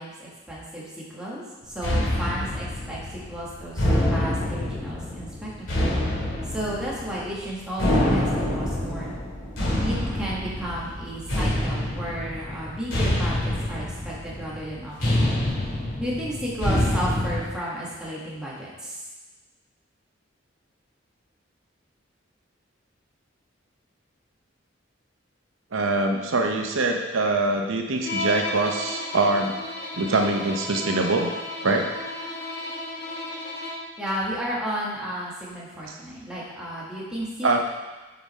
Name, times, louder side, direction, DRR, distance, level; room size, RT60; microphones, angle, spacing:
voice 1, 0.0-5.9 6.5-9.2 9.8-15.4 16.0-19.0 34.0-37.6, equal, 5° right, -7 dB, 1.6 m, -33 dB
sound 1, 1.8-17.4, left 1 dB, 80° left, 2.2 m, -26 dB
voice 2, 25.7-29.5 29.9-31.3 31.6-31.9 35.9-36.0 37.4-37.6, right 2 dB, 85° right, 3 dB, 0.7 m, -23 dB
Bowed string instrument, 28.0-34.0, left 1 dB, 55° left, 1.2 m, -33 dB
7.0 x 5.0 x 4.2 m, 1.2 s
head